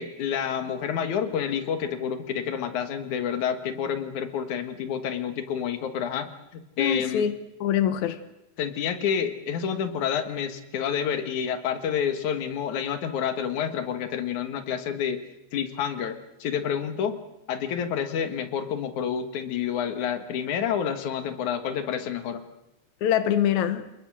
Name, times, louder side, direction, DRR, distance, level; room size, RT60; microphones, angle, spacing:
voice 1, 0.0-7.3 8.6-15.2 15.5-17.2 17.5-22.4, left 8 dB, 55° left, 2.4 m, -29 dB
voice 2, 6.8-7.3 7.6-8.2 23.0-23.9, left 9 dB, 90° left, 1.6 m, -24 dB
29.0 x 21.0 x 6.3 m
omnidirectional pair, 5.2 m